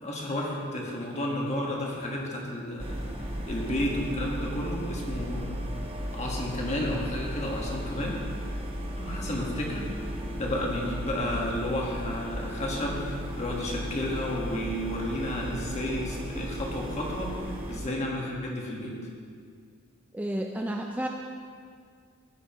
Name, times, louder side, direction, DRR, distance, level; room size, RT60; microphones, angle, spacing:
voice 1, 0.0-3.0 3.5-5.6 6.1-8.2 9.0-18.9, left 1 dB, 30° left, -2 dB, 1.6 m, -32 dB
sound 1, 2.8-17.8, equal, 25° right, 1.0 m, -35 dB
voice 2, 20.1-21.1, right 1 dB, 5° right, 2 dB, 0.4 m, -31 dB
15.0 x 8.0 x 3.1 m, 2.1 s
head